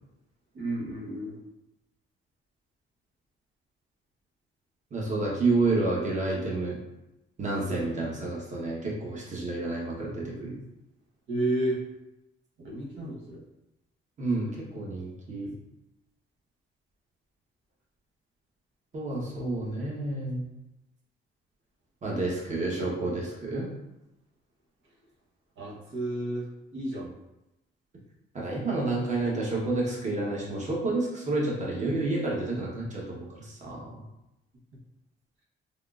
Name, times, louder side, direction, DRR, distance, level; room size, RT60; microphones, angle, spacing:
voice 1, 0.5-1.4 11.3-11.8 12.6-13.4 25.6-26.5 26.7-27.1, right 1 dB, 75° right, -3 dB, 1.0 m, -31 dB
voice 2, 4.9-6.8 7.4-10.6 14.2-15.6 18.9-20.5 22.0-23.7 28.3-34.0, right 2 dB, 35° right, -4 dB, 1.0 m, -29 dB
3.5 x 2.5 x 2.4 m, 0.92 s
cardioid pair, 90°, 20 cm